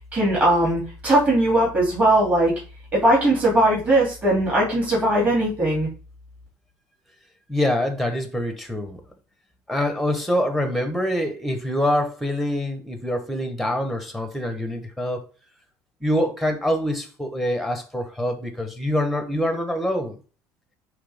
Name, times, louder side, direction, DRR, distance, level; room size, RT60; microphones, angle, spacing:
voice 1, 0.1-2.5 2.9-5.9, right 1 dB, 20° right, 2.8 m, -19 dB
voice 2, 7.5-9.0 9.7-15.2 16.0-20.2, left 1 dB, ahead, 1.1 m, -25 dB
9.5 x 3.3 x 3.5 m
cardioid pair, 160°, 8 cm